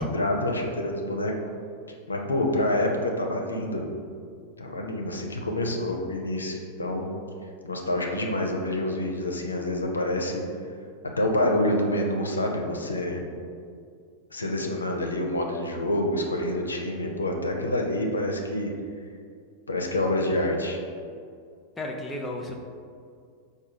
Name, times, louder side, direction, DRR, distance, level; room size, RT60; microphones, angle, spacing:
voice 1, 0.0-1.3 2.1-3.8 4.6-7.1 7.6-10.4 11.2-13.2 14.3-18.7 19.7-20.8, left 1 dB, 75° left, 1 dB, 0.5 m, -27 dB
voice 2, 21.8-22.6, left 1 dB, 10° left, 0 dB, 0.5 m, -32 dB
4.7 x 2.3 x 4.8 m, 2.3 s
figure-of-eight pair, 90°, 0 cm